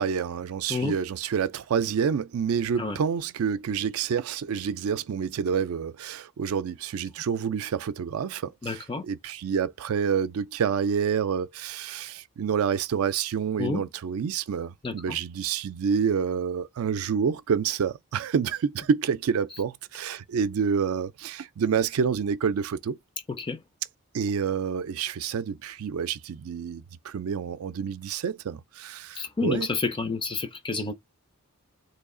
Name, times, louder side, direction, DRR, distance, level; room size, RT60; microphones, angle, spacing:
voice 1, 0.0-23.0 24.1-29.7, right 6 dB, 70° right, 0.4 m, -28 dB
voice 2, 8.6-9.0 13.6-13.9 14.8-15.2 23.3-23.6 29.2-30.9, left 3 dB, 20° left, 0.5 m, -29 dB
3.2 x 2.3 x 3.7 m
head